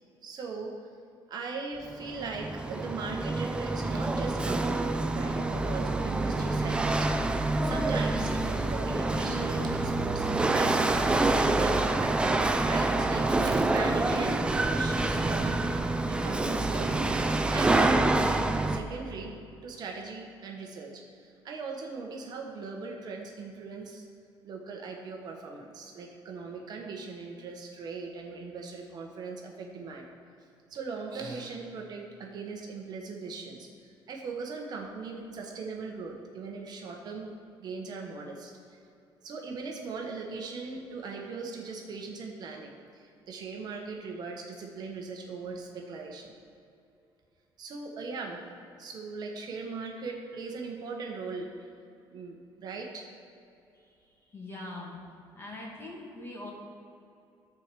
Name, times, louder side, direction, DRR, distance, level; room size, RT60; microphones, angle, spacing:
voice 1, 0.2-0.8 1.3-11.9 12.2-15.7 16.0-17.1 17.5-19.4 19.6-24.0 24.4-30.1 30.7-33.7 34.1-37.3 37.6-38.8 39.2-46.3 47.6-48.4 48.8-51.7 52.1-53.1, right 4 dB, 45° right, 1 dB, 1.2 m, -39 dB
Chatter / Hiss / Rattle, 1.9-18.8, right 2 dB, 10° right, 0.5 m, -27 dB
sound 1, 7.7-13.9, right 8 dB, 85° right, 1.7 m, -45 dB
voice 2, 53.7-55.0 55.3-56.5, left 2 dB, 25° left, -3 dB, 2.4 m, -43 dB
13.5 x 4.7 x 6.8 m, 2.6 s
cardioid pair, 135°, 9 cm